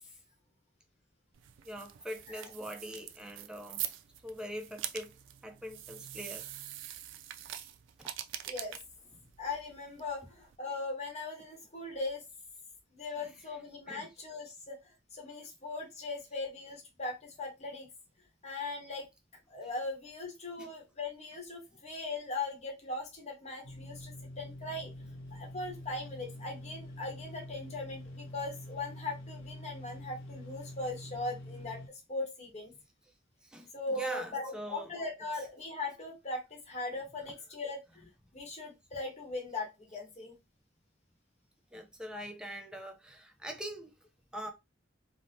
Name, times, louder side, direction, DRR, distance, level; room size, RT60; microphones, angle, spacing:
sound 1, 1.3-10.6, right 11 dB, 65° right, 0.3 m, -44 dB
voice 1, 1.6-3.9 4.2-5.1 5.4-6.5 8.0-8.1 13.9-14.1 20.6-20.7 33.4-34.9 41.7-43.9 44.3-44.5, equal, 5° right, 0.5 m, -43 dB
voice 2, 8.5-8.8 9.4-12.2 12.9-17.9 18.4-19.1 19.5-24.9 25.3-31.8 32.1-32.7 33.7-40.3, left 2 dB, 35° left, 0.9 m, -39 dB
sound 2, 23.6-31.9, left 1 dB, 65° left, 0.7 m, -46 dB
3.3 x 2.0 x 2.6 m
head